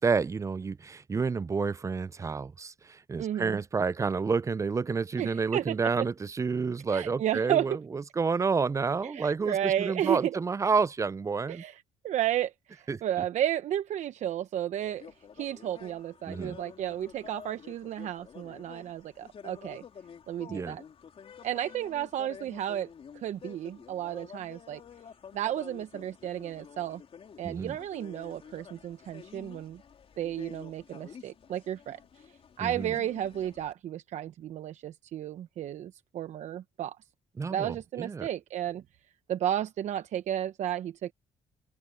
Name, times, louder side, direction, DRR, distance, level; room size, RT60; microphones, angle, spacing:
voice 1, 0.0-11.6 12.9-13.0 16.3-16.6 20.5-20.8 27.4-27.8 32.6-32.9 37.4-38.3, right 5 dB, 25° right, 0.4 m, -29 dB
voice 2, 3.2-3.6 5.2-6.1 6.9-7.8 9.0-10.4 11.5-15.1 15.3-19.8 20.3-20.8 21.4-24.8 25.3-27.0 27.4-29.8 30.2-32.0 32.3-37.0 37.5-38.8 39.3-41.1, right 11 dB, 65° right, 0.9 m, -33 dB
sound 1, 14.8-33.7, left 7 dB, 50° left, 3.7 m, -50 dB
open air
supercardioid pair, 80°, 13 cm